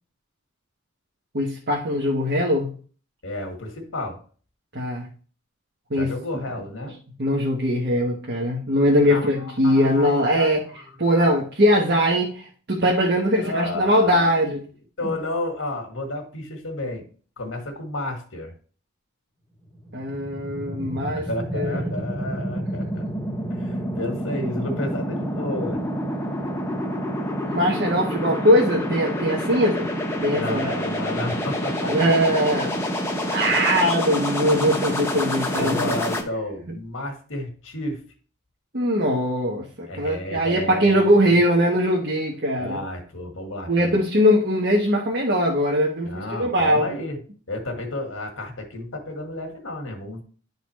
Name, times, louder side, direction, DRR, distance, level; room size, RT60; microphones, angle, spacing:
voice 1, 1.3-2.7 4.7-5.1 5.9-6.1 7.2-10.6 11.0-14.6 15.0-15.1 19.9-21.3 21.5-21.9 27.5-29.9 30.2-30.8 31.9-32.8 33.3-35.9 38.7-42.8 43.7-46.9, equal, 50° right, -2 dB, 1.2 m, -21 dB
voice 2, 3.2-4.2 5.9-7.0 9.0-10.8 11.1-11.4 13.3-14.4 15.0-17.0 17.4-18.5 21.2-23.1 23.5-25.8 30.3-32.3 35.5-38.0 39.9-41.4 42.6-44.0 46.0-47.2 47.5-50.2, left 1 dB, 75° left, 3 dB, 1.7 m, -32 dB
sound 1, 19.7-36.2, equal, 15° left, 0.9 m, -28 dB
11.0 x 4.1 x 3.1 m, 0.42 s
head